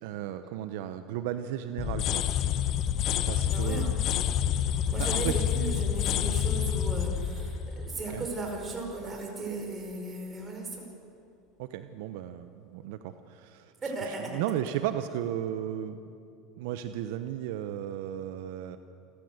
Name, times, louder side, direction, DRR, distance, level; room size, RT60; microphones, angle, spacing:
voice 1, 0.0-2.2 3.3-3.9 5.0-5.4 8.1-8.3 11.6-13.7 14.1-16.0 16.6-18.8, right 11 dB, 75° right, 10 dB, 0.9 m, -34 dB
sound 1, 1.8-8.6, left 9 dB, 45° left, 1.0 m, -28 dB
voice 2, 3.5-4.1 4.9-10.9 13.8-14.4, right 3 dB, 20° right, 1 dB, 5.0 m, -36 dB
28.5 x 13.5 x 8.0 m, 2.6 s
supercardioid pair, 125°, 0 cm